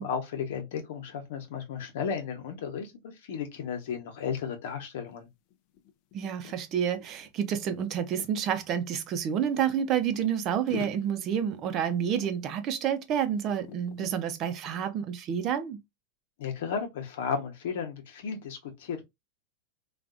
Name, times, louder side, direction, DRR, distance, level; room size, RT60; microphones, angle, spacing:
voice 1, 0.0-5.3 16.4-19.0, left 6 dB, 75° left, 1.1 m, -34 dB
sound 1, 5.1-5.2 5.5-8.3 9.1-10.4 10.7-13.2 13.5-14.2 14.7-14.9, left 8 dB, 50° left, 0.5 m, -46 dB
voice 2, 6.1-15.8, right 8 dB, 40° right, 0.7 m, -29 dB
3.4 x 2.5 x 2.5 m
supercardioid pair, 130°, 0 cm